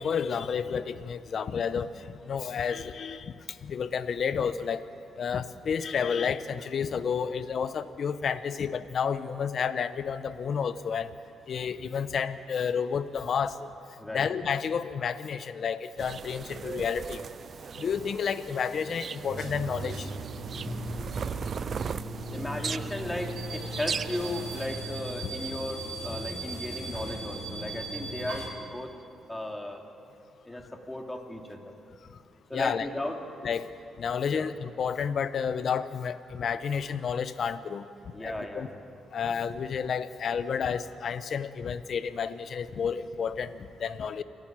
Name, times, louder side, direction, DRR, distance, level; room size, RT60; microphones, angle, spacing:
voice 1, 0.0-3.3 3.6-4.8 5.2-11.1 11.5-13.7 14.1-17.2 17.7-20.1 32.5-32.9 33.4-33.7 34.0-37.9 38.2-38.7 39.1-44.2, left 6 dB, 60° left, 13 dB, 1.0 m, -30 dB
sound 1, 16.0-24.7, right 6 dB, 50° right, 0.4 m, -38 dB
sound 2, 19.3-28.5, right 2 dB, 70° right, 4.6 m, -37 dB
voice 2, 22.3-28.9 29.3-29.8 30.4-31.7 32.5-33.2 34.3-34.5 38.1-38.8, left 1 dB, 15° left, 2 dB, 3.0 m, -36 dB
28.0 x 11.0 x 9.0 m, 2.5 s
cardioid pair, 70°, 0 cm